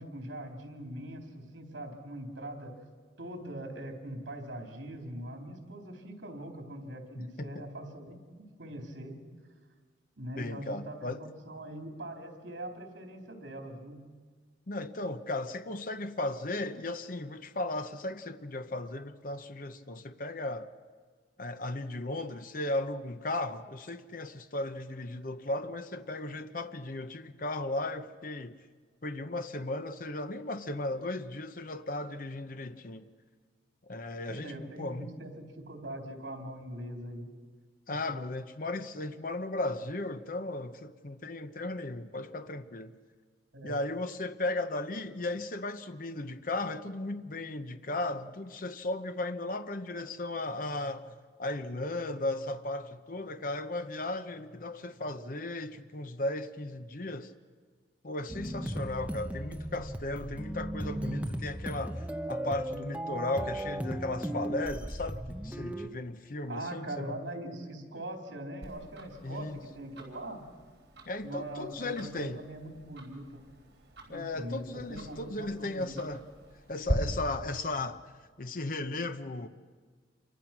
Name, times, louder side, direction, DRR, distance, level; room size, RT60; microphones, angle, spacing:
voice 1, 0.0-2.8 3.2-9.2 10.2-14.1 34.3-37.3 37.9-38.0 43.5-43.8 66.5-70.4 71.2-73.4 74.1-76.1, right 1 dB, 80° right, 3.8 m, -42 dB
voice 2, 7.2-7.6 10.4-11.2 14.7-20.7 21.4-28.5 29.0-33.1 33.8-35.1 37.9-42.9 43.6-51.1 51.4-57.3 58.0-67.1 69.2-69.6 71.0-72.4 74.1-76.2 76.7-78.0 78.4-79.5, left 2 dB, 45° left, 0.8 m, -36 dB
sound 1, 58.3-65.9, right 1 dB, 10° right, 0.9 m, -36 dB
Tick-tock, 68.6-76.9, equal, 60° right, 5.1 m, -42 dB
27.5 x 24.0 x 6.1 m
head